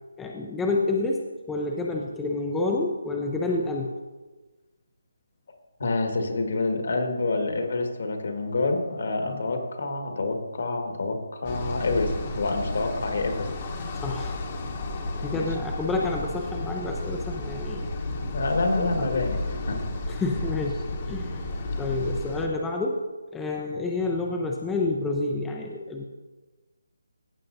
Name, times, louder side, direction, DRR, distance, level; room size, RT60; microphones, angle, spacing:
voice 1, 0.2-1.2 1.5-3.9 9.3-9.4 14.0-14.4 15.2-17.9 18.8-19.1 20.1-21.4 21.8-23.0 23.3-26.0, left 2 dB, 5° left, 0 dB, 0.4 m, -29 dB
voice 2, 5.8-13.5 15.3-15.5 18.3-19.4 19.7-19.8, left 3 dB, 60° left, 4 dB, 1.6 m, -27 dB
sound 1, 11.4-22.5, left 2 dB, 30° left, 1.0 m, -32 dB
14.5 x 7.2 x 2.6 m, 1.3 s
hypercardioid pair, 170°, 0 cm